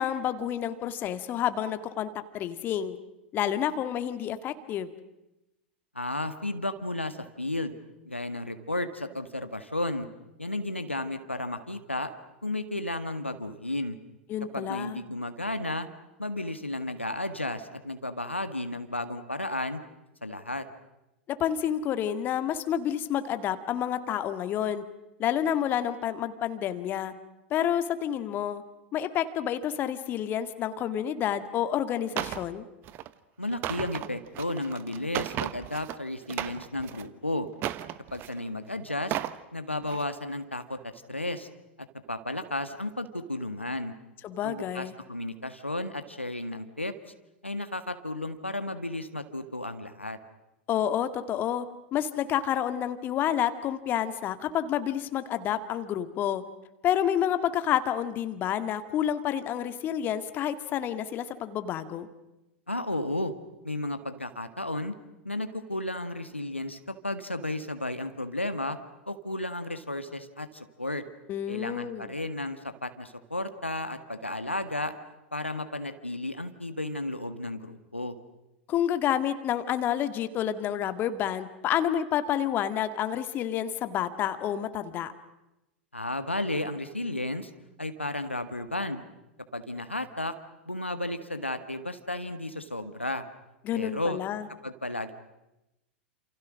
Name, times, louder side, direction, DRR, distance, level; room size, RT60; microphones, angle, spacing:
voice 1, 0.0-3.0 3.3-4.9 14.3-15.0 21.3-24.8 25.2-27.1 27.5-28.6 28.9-32.7 44.2-44.9 50.7-51.7 51.9-56.4 56.8-62.1 71.3-72.1 78.7-85.1 93.6-94.5, left 10 dB, 30° left, 10 dB, 1.9 m, -29 dB
voice 2, 6.0-7.8 8.1-10.1 10.4-12.1 12.4-14.0 14.5-15.9 16.2-19.8 20.2-20.7 33.4-37.5 38.1-39.2 39.5-40.8 41.1-41.5 42.1-43.9 44.4-46.9 47.4-50.2 62.7-63.3 63.6-64.9 65.2-68.8 69.1-71.0 71.5-74.9 75.3-78.2 85.9-87.5 87.8-89.0 89.5-90.3 90.7-93.2 93.7-94.2 94.6-95.1, left 1 dB, 90° left, 9 dB, 1.8 m, -33 dB
Breaking a door or Cardboard boxes breaking, 32.2-32.5 32.8-33.1 33.5-36.0 36.3-37.1 37.6-38.4 38.9-39.4 39.8-40.0, right 13 dB, 35° right, 1.2 m, -35 dB
29.0 x 28.0 x 6.4 m, 0.95 s
figure-of-eight pair, 95°, 6 cm